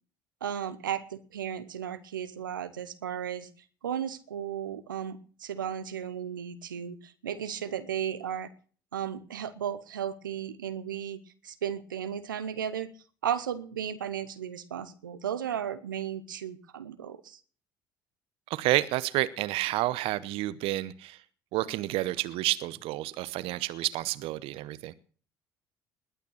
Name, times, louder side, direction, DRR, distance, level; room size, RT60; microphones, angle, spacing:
voice 1, 0.4-3.5 3.8-8.5 8.9-12.9 13.2-17.4, right 9 dB, 85° right, 0.9 m, -35 dB
voice 2, 18.5-21.2 21.5-24.9, right 16 dB, 65° right, 0.9 m, -30 dB
20.0 x 9.2 x 6.4 m
hypercardioid pair, 55°, 10 cm